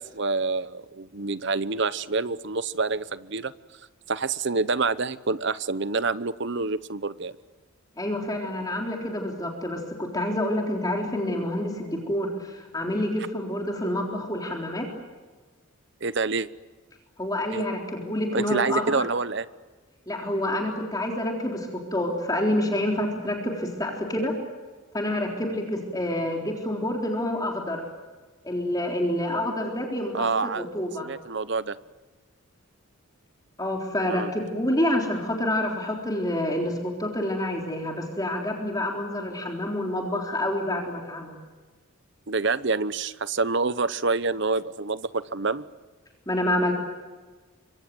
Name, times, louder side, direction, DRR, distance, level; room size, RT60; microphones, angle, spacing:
voice 1, 0.0-3.5 4.1-7.3 16.0-16.5 17.5-17.6 18.3-19.5 30.1-30.7 31.0-31.8 34.1-34.3 42.3-45.6, right 4 dB, 50° right, 16 dB, 0.9 m, -27 dB
voice 2, 8.0-14.9 17.2-19.0 20.1-24.3 24.9-27.8 28.4-31.1 33.6-41.4 46.3-46.7, left 1 dB, 15° left, 1 dB, 3.8 m, -28 dB
26.5 x 24.0 x 7.9 m, 1.3 s
head